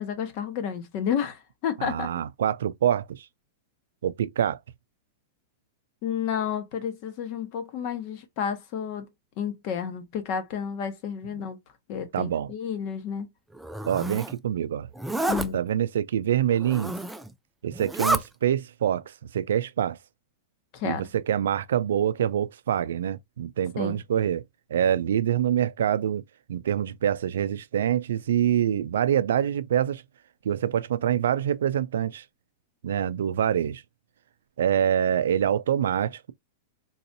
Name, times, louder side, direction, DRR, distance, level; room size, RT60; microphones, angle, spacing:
voice 1, 0.0-2.1 6.0-9.1 9.4-11.6 11.9-13.3 15.3-15.6 20.7-21.1 23.8-24.0, left 8 dB, 45° left, 1.2 m, -31 dB
voice 2, 1.8-3.3 4.0-4.6 11.3-11.4 12.1-12.5 13.8-14.9 15.5-16.9 17.6-20.0 20.8-24.4 24.7-26.2 26.5-30.0 30.4-32.2 32.8-33.8 34.6-36.3, right 10 dB, 85° right, 0.4 m, -25 dB
Zipper (clothing), 13.6-14.3 15.0-15.5 16.6-17.3 17.7-18.2, right 2 dB, 5° right, 0.4 m, -29 dB
3.9 x 2.6 x 2.7 m
supercardioid pair, 145°, 0 cm